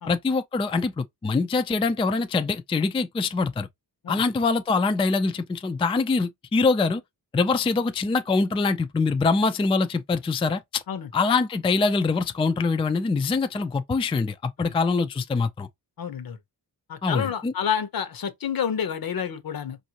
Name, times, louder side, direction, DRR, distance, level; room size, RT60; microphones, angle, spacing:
voice 1, 0.1-3.7 4.1-7.0 7.3-10.8 11.1-15.7 17.0-17.5, left 4 dB, 15° left, 0.3 m, -24 dB
voice 2, 16.0-16.4 16.9-19.8, left 8 dB, 60° left, 0.9 m, -29 dB
5.3 x 2.6 x 2.8 m
wide cardioid pair, 125°, 40 cm